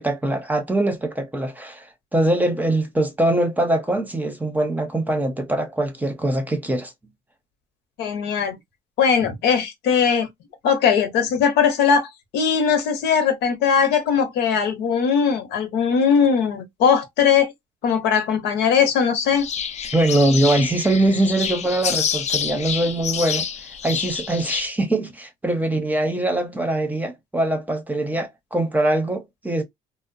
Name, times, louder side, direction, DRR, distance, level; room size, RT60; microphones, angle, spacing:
voice 1, 0.0-6.9 19.9-23.5 23.8-29.6, right 1 dB, 10° right, 0.7 m, -22 dB
voice 2, 8.0-8.5 9.0-10.3 10.6-17.5 17.8-19.5, left 6 dB, 85° left, 0.9 m, -20 dB
sound 1, 19.3-24.7, left 7 dB, 40° left, 0.5 m, -27 dB
2.8 x 2.0 x 2.5 m
cardioid pair, 110°, 17 cm